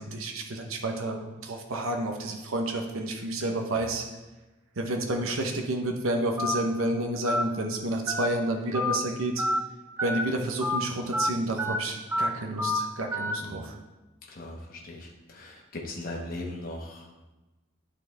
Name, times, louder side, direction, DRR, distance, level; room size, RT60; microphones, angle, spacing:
voice 1, 0.0-4.0 4.8-9.4 10.0-13.8, right 1 dB, 80° right, 2 dB, 0.9 m, -30 dB
Telephone, 6.4-6.5 7.3-7.4 8.1-8.2 8.7-9.0 9.4-9.6 10.0-10.2 10.6-10.8 11.1-11.3 11.6-11.8 12.1-12.3 12.6-12.8 13.1-13.3, left 1 dB, 10° right, 0.3 m, -27 dB
voice 2, 13.4-13.7 14.3-17.1, left 1 dB, 45° left, -2 dB, 1.1 m, -39 dB
11.0 x 4.4 x 3.4 m, 1.1 s
head